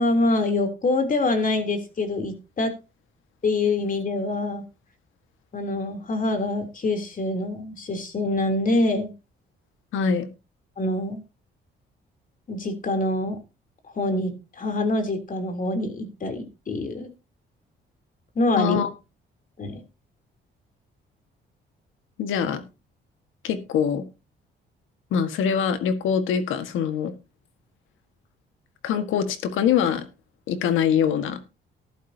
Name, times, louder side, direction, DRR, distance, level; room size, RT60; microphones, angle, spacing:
voice 1, 0.0-2.7 3.4-4.6 5.5-9.1 10.8-11.2 12.5-13.4 13.9-17.1 18.3-18.8 19.6-19.7, left 2 dB, 45° left, 6 dB, 3.4 m, -25 dB
voice 2, 9.9-10.3 18.6-18.9 22.2-22.6 23.4-24.0 25.1-27.1 28.8-30.1 30.5-31.4, left 7 dB, 85° left, 10 dB, 1.7 m, -23 dB
14.5 x 11.5 x 2.8 m, 0.28 s
cardioid pair, 90°, 20 cm